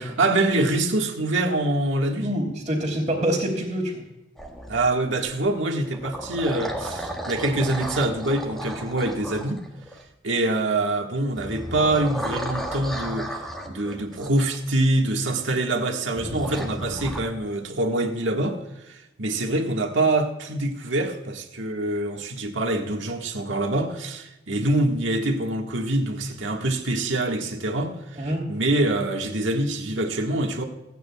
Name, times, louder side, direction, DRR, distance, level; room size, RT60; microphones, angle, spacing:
voice 1, 0.0-2.3 4.7-9.6 10.2-30.6, right 2 dB, 80° right, 3 dB, 1.6 m, -25 dB
voice 2, 2.2-4.1 28.2-28.4, right 1 dB, 30° right, -6 dB, 2.7 m, -26 dB
sound 1, 4.4-5.3 5.8-10.1 11.3-14.6 16.1-17.2, equal, ahead, 1.5 m, -34 dB
27.5 x 9.2 x 2.3 m, 0.95 s
head